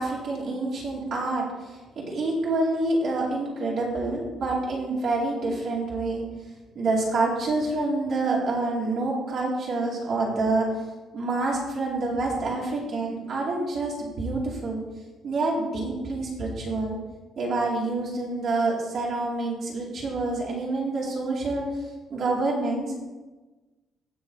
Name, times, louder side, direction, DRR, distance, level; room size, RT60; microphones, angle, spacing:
voice 1, 0.0-6.3 6.7-10.8 11.1-14.8 15.2-17.0 17.4-21.7 22.1-23.0, right 2 dB, 45° right, -5 dB, 2.5 m, -27 dB
16.5 x 6.0 x 4.0 m, 1.2 s
cardioid pair, 160°, 0 cm